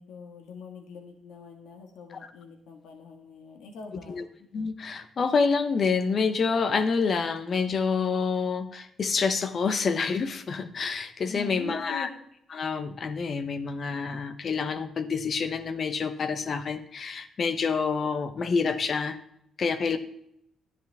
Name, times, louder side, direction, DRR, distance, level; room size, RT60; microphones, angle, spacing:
voice 1, 0.0-4.3 11.3-12.1, left 5 dB, 85° left, 3 dB, 1.8 m, -42 dB
voice 2, 4.5-12.1 12.5-19.2 19.6-20.0, left 5 dB, 50° left, 11 dB, 1.0 m, -27 dB
10.5 x 10.5 x 3.5 m, 0.74 s
cardioid pair, 90°, 0 cm